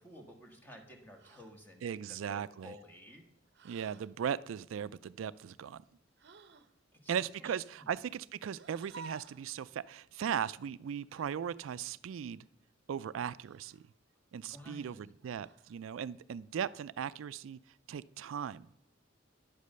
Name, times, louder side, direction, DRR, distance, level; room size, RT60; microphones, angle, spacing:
voice 1, 0.0-3.2 6.9-7.9 14.4-15.0, left 1 dB, 10° left, 2 dB, 1.6 m, -53 dB
sound 1, 1.2-1.6 3.5-4.1 6.2-6.7 8.5-9.5 11.1-11.3 13.4-13.9 15.3-15.8, right 4 dB, 60° right, 0.7 m, -53 dB
voice 2, 1.8-2.7 3.6-5.8 7.1-12.4 12.9-13.8 14.3-17.6 17.9-18.7, right 8 dB, 80° right, 17 dB, 0.3 m, -38 dB
10.5 x 8.3 x 6.7 m, 0.74 s
head